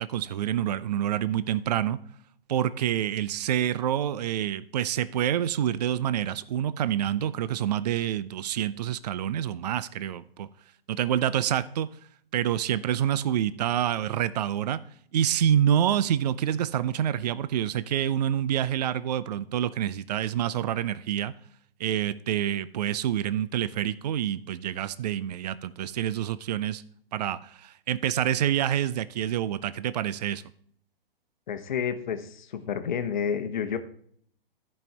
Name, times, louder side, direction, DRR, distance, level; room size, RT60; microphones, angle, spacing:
voice 1, 0.0-2.0 2.5-10.5 10.9-11.9 12.3-14.8 15.1-21.3 21.8-26.8 27.1-30.4, right 10 dB, 45° right, 16 dB, 0.4 m, -27 dB
voice 2, 31.5-33.8, left 7 dB, 50° left, 9 dB, 1.0 m, -30 dB
14.0 x 5.4 x 3.4 m, 0.64 s
figure-of-eight pair, 120°, 30 cm